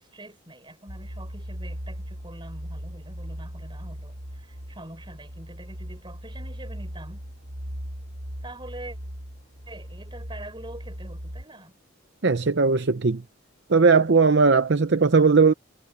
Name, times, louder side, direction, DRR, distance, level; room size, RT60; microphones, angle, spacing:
voice 1, 0.0-7.2 8.4-9.0 9.7-11.8, right 1 dB, 20° right, 6.1 m, -44 dB
sound 1, 0.9-11.4, equal, 70° right, 7.4 m, -38 dB
voice 2, 12.2-13.2 13.7-15.5, right 4 dB, 55° right, 0.7 m, -18 dB
head